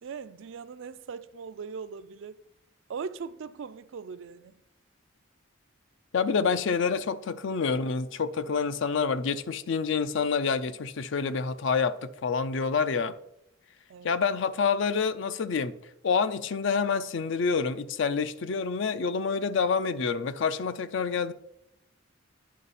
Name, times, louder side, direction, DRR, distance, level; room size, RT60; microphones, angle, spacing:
voice 1, 0.0-2.4 2.9-4.5 13.9-14.1, right 5 dB, 65° right, 0.4 m, -40 dB
voice 2, 6.1-13.1 14.0-15.8 16.0-21.3, left 5 dB, 60° left, 0.4 m, -27 dB
9.3 x 5.4 x 4.1 m
head